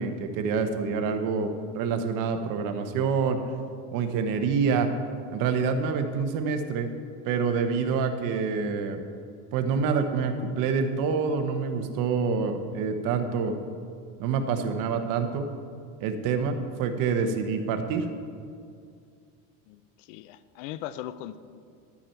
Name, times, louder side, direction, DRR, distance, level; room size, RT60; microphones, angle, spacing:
voice 1, 0.0-3.4 3.9-4.9 5.3-6.9 7.2-9.0 9.5-13.5 14.2-15.5 16.0-18.1, right 5 dB, 60° right, 7 dB, 1.1 m, -27 dB
voice 2, 19.7-21.4, left 12 dB, 80° left, 14 dB, 0.6 m, -39 dB
11.5 x 8.5 x 4.5 m, 2.3 s
supercardioid pair, 130°, 38 cm